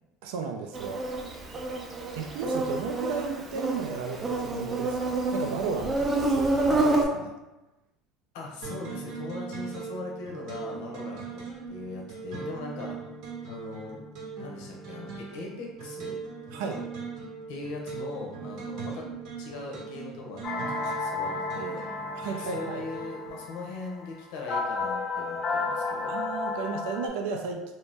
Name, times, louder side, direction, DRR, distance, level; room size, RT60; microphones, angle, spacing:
voice 1, 0.2-1.1 2.2-7.3 16.5-16.8 22.1-22.8 26.1-27.7, right 5 dB, 90° right, 3 dB, 0.3 m, -34 dB
Insect, 0.7-7.0, right 2 dB, 20° right, 0.4 m, -28 dB
voice 2, 8.3-11.4 11.7-13.0 13.5-14.0 14.4-16.2 17.5-19.1 19.4-21.8 22.4-26.1, left 3 dB, 80° left, -1 dB, 0.7 m, -40 dB
sound 1, 8.6-23.4, right 5 dB, 65° right, 0.7 m, -39 dB
sound 2, 20.4-27.1, left 3 dB, 40° left, 0.5 m, -32 dB
2.6 x 2.0 x 3.3 m, 1.0 s
cardioid pair, 135°, 0 cm